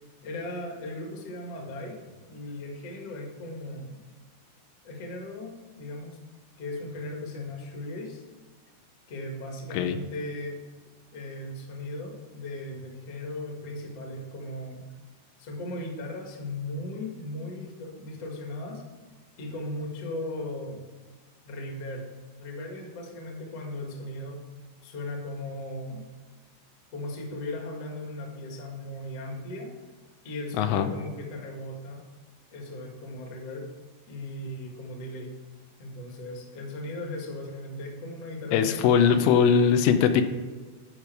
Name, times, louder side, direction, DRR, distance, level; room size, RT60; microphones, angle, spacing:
voice 1, 0.2-4.0 4.8-6.2 6.6-8.2 9.1-10.6 11.1-14.8 15.4-18.8 19.4-20.8 21.4-22.1 22.4-24.4 24.8-26.1 26.9-29.7 30.2-32.0 32.5-33.7 34.1-35.3 35.8-39.2 39.5-39.6, left 1 dB, 50° left, 1 dB, 1.9 m, -37 dB
voice 2, 30.6-30.9 38.5-40.2, left 7 dB, 85° left, 8 dB, 2.9 m, -21 dB
12.0 x 5.3 x 4.7 m, 1.4 s
omnidirectional pair, 5.1 m